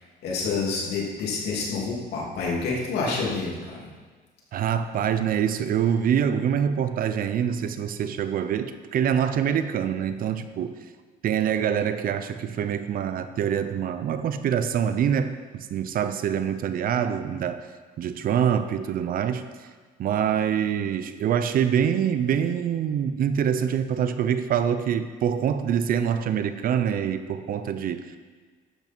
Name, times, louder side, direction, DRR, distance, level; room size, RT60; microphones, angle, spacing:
voice 1, 0.2-3.9, left 4 dB, 75° left, -3 dB, 2.9 m, -28 dB
voice 2, 4.5-10.8 11.2-17.7 18.0-19.7 20.0-28.2, right 8 dB, 60° right, 11 dB, 0.7 m, -25 dB
12.0 x 8.2 x 4.5 m, 1.5 s
cardioid pair, 110°, 17 cm